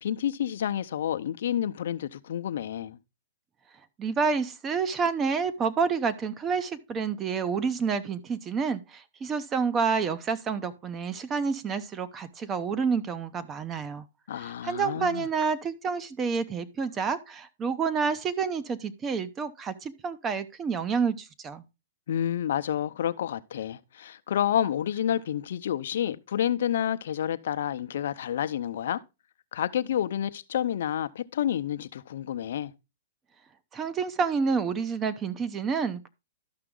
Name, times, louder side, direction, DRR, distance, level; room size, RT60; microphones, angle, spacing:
voice 1, 0.0-3.0 14.3-15.3 22.1-29.0 29.5-32.7, left 10 dB, 70° left, 0.7 m, -29 dB
voice 2, 4.0-14.0 14.4-21.6 33.7-36.1, right 5 dB, 20° right, 0.8 m, -29 dB
12.5 x 5.9 x 3.8 m
hypercardioid pair, 140°, 0 cm